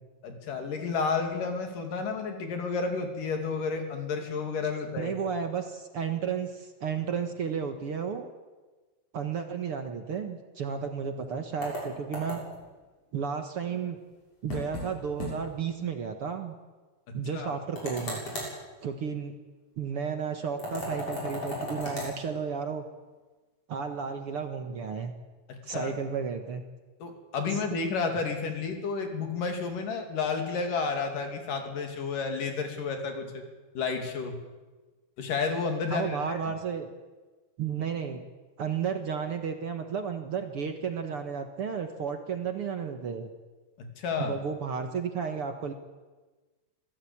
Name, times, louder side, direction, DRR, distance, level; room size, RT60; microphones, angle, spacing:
voice 1, 0.2-5.1 17.1-17.5 25.5-25.9 27.0-33.4 33.7-34.4 35.2-36.4 43.8-44.4, left 4 dB, 80° left, 4 dB, 4.4 m, -31 dB
voice 2, 5.0-8.3 9.1-12.4 13.1-14.0 14.4-16.6 17.1-18.2 18.8-19.3 19.8-22.9 23.7-25.1 25.6-26.6 35.9-36.9 37.6-38.2 38.6-43.3 44.2-45.7, right 6 dB, 50° right, 6 dB, 2.0 m, -33 dB
sound 1, 11.6-12.6 14.5-14.9 15.2-15.3 15.7-15.8 17.8-18.5 20.6-22.1, left 1 dB, 45° left, 8.2 m, -35 dB
25.5 x 17.0 x 8.7 m, 1.3 s
omnidirectional pair, 3.7 m